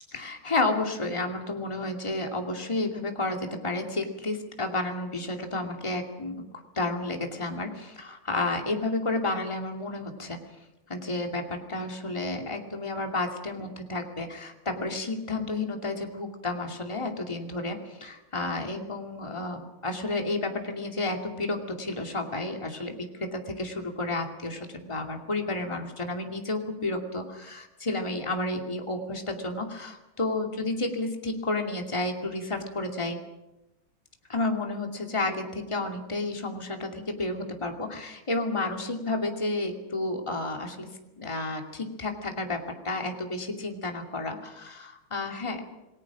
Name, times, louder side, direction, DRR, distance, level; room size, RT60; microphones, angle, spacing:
voice 1, 0.1-6.4 6.7-10.4 10.9-33.2 34.3-40.9 41.2-45.6, left 2 dB, 15° left, 3 dB, 2.5 m, -31 dB
28.0 x 20.0 x 6.2 m, 0.96 s
omnidirectional pair, 2.3 m